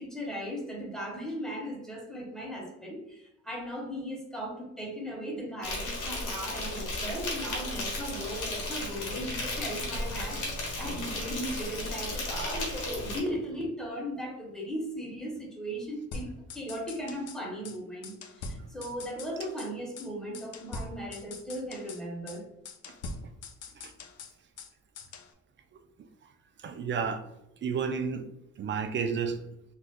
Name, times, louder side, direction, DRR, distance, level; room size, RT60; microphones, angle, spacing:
voice 1, 0.0-22.5, equal, ahead, -1 dB, 1.0 m, -37 dB
Insect, 5.6-13.2, left 2 dB, 85° left, 1.3 m, -34 dB
sound 1, 16.1-17.4 17.7-17.8 18.0-19.7 20.0-20.1 20.3-22.0 22.3-22.4 22.7-24.7 25.0-25.3, left 3 dB, 55° left, 0.5 m, -42 dB
voice 2, 26.6-27.2 27.6-28.2 28.6-29.4, right 6 dB, 40° right, 8 dB, 0.5 m, -30 dB
3.9 x 2.4 x 2.2 m, 0.84 s
cardioid pair, 90°, 30 cm